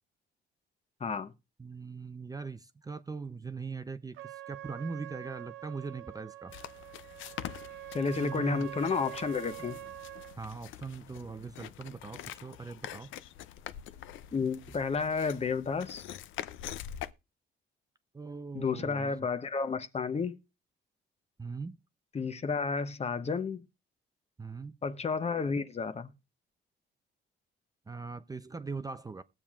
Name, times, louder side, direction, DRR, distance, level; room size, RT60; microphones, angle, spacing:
voice 1, 1.0-1.3 7.9-9.8 14.3-16.0 18.5-20.4 22.1-23.6 24.8-26.1, left 5 dB, 30° left, 0.8 m, -31 dB
voice 2, 1.6-6.5 8.1-8.7 10.4-13.1 18.1-19.3 21.4-21.8 24.4-24.8 27.9-29.2, right 4 dB, 20° right, 0.5 m, -41 dB
Trumpet, 4.1-10.4, right 15 dB, 85° right, 0.7 m, -45 dB
sound 1, 6.5-17.1, left 11 dB, 80° left, 0.5 m, -45 dB
20.5 x 7.2 x 2.4 m
cardioid pair, 90°, 20 cm